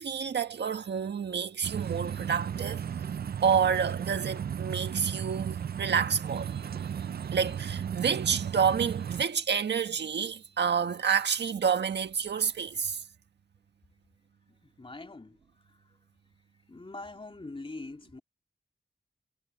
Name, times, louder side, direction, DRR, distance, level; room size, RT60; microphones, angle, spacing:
voice 1, 0.0-2.8 3.4-13.0, right 7 dB, 90° right, 1.6 m, -29 dB
sound 1, 1.6-9.2, right 8 dB, 65° right, 0.5 m, -35 dB
voice 2, 14.5-16.0 16.7-18.2, left 2 dB, 30° left, 2.7 m, -44 dB
cardioid pair, 45°, 17 cm